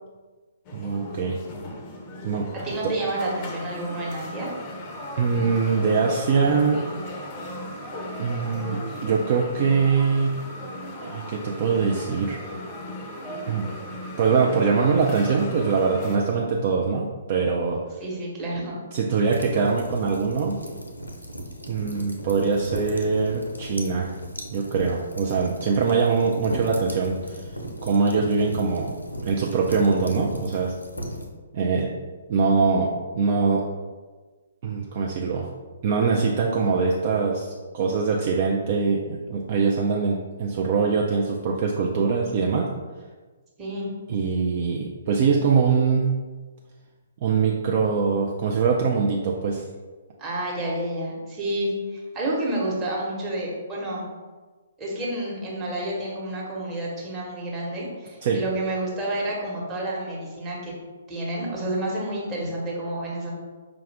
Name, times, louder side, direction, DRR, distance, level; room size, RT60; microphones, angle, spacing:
sound 1, 0.6-16.2, left 1 dB, 30° left, 0.5 m, -37 dB
voice 1, 0.7-1.4 2.2-2.4 5.2-6.8 8.1-10.4 11.0-12.4 13.5-13.7 14.2-17.8 18.9-20.6 21.7-24.1 24.5-27.4 27.8-29.0 29.2-30.7 31.5-31.9 32.3-33.6 34.6-35.5 35.8-42.7 44.1-46.1 47.2-49.6 58.2-58.4, right 5 dB, 45° right, -1 dB, 0.4 m, -23 dB
voice 2, 2.5-4.5 18.0-18.8 43.6-43.9 50.2-54.1 54.8-60.7 61.1-63.3, right 1 dB, 20° right, -5 dB, 1.1 m, -29 dB
sound 2, 19.3-31.3, equal, 90° left, 0.6 m, -36 dB
4.8 x 2.4 x 3.3 m, 1.3 s
figure-of-eight pair, 125°, 0 cm